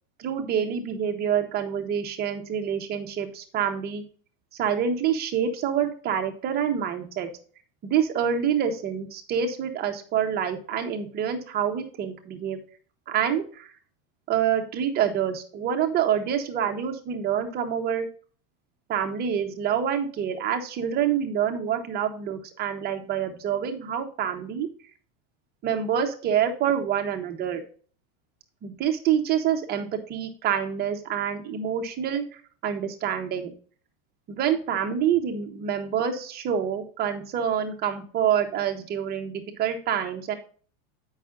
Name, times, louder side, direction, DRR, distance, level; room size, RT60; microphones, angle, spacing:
voice 1, 0.2-4.0 4.6-7.3 7.8-12.6 13.1-13.7 14.3-18.1 18.9-24.7 25.6-27.6 28.6-33.5 34.3-40.3, right 8 dB, 25° right, 5 dB, 0.9 m, -27 dB
8.3 x 5.6 x 3.6 m, 0.43 s
supercardioid pair, 170°, 42 cm